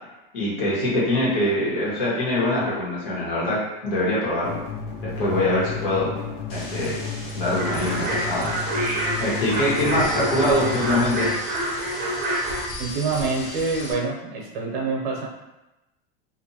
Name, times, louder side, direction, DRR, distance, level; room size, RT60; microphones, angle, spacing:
voice 1, 0.3-4.6 5.0-6.1 6.5-7.0 7.3-8.5 8.7-8.8 9.2-11.3, left 1 dB, 70° left, -6 dB, 1.5 m, -23 dB
sound 1, 4.4-11.3, left 5 dB, 90° left, 0.9 m, -33 dB
sound 2, 6.5-13.9, left 1 dB, 20° left, 0.4 m, -37 dB
sound 3, 7.6-12.6, right 1 dB, 30° right, 0.6 m, -27 dB
voice 2, 9.6-9.9 12.8-15.3, right 4 dB, 85° right, -1 dB, 0.7 m, -26 dB
2.6 x 2.6 x 2.7 m, 1.0 s
supercardioid pair, 160°, 30 cm